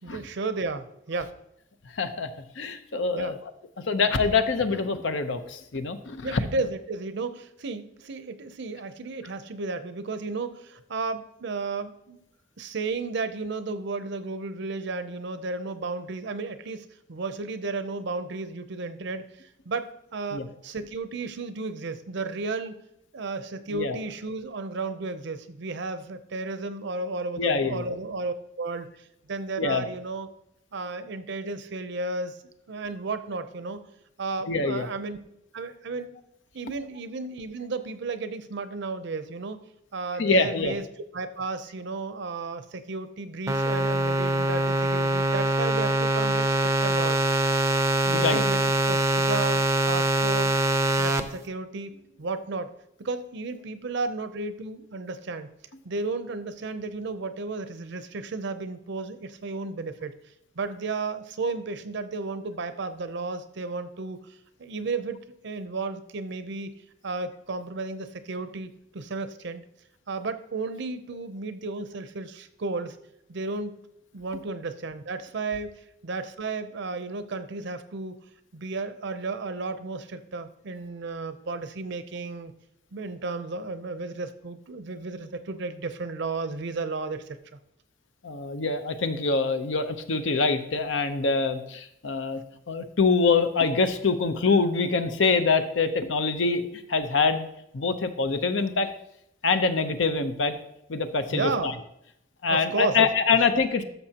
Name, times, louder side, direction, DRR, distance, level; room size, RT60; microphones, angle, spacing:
voice 1, 0.0-1.4 3.1-3.4 6.2-12.2 12.6-22.8 23.1-30.3 30.7-32.4 32.7-33.8 34.2-35.2 35.5-36.2 36.5-39.6 39.9-40.8 41.1-47.2 48.0-49.6 49.9-50.5 51.0-52.7 53.0-55.5 55.8-60.2 60.6-64.2 64.6-66.7 67.0-69.6 70.1-73.0 73.3-73.8 74.1-78.2 78.5-82.5 82.9-87.4 101.3-101.7 102.5-103.4, right 3 dB, 65° right, 11 dB, 0.6 m, -33 dB
voice 2, 1.9-2.3 2.6-3.3 3.9-6.4 20.3-20.5 23.7-24.0 27.4-27.8 29.6-29.8 34.5-34.9 40.2-40.7 48.1-48.4 88.2-92.4 92.7-97.5 97.7-98.9 99.4-100.6 100.9-101.7 102.4-103.8, left 4 dB, 70° left, 9 dB, 0.8 m, -25 dB
sound 1, 43.5-51.2, right 1 dB, 15° right, 0.5 m, -23 dB
13.5 x 6.7 x 2.9 m, 0.81 s
head